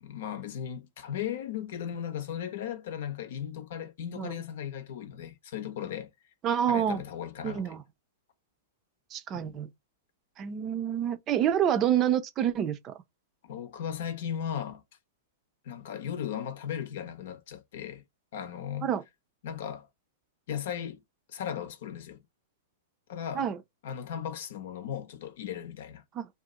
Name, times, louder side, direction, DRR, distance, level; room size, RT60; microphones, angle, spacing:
voice 1, 0.0-6.1 6.7-7.7 9.3-9.6 13.4-14.8 15.6-18.0 18.3-18.9 19.4-19.9 20.5-21.0 21.3-22.2 23.1-23.5 23.8-26.0, left 9 dB, 60° left, 0.7 m, -37 dB
voice 2, 6.4-7.0 7.4-7.8 9.1-9.7 10.4-12.9 18.8-19.0 23.3-23.6 26.2-26.3, right 9 dB, 30° right, 0.5 m, -27 dB
2.7 x 2.5 x 3.7 m
hypercardioid pair, 105°, 0 cm